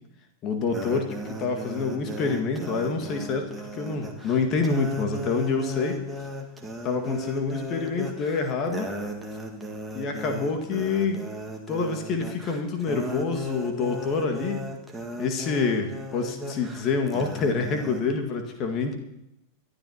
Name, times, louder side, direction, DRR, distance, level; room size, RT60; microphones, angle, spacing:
voice 1, 0.4-6.0 6.8-8.9 9.9-11.2 11.7-14.6 15.2-18.9, left 4 dB, 35° left, 5 dB, 1.9 m, -27 dB
sound 1, 0.7-18.0, equal, 5° right, 1.8 m, -36 dB
28.5 x 11.5 x 2.9 m, 0.87 s
figure-of-eight pair, 90°, 0 cm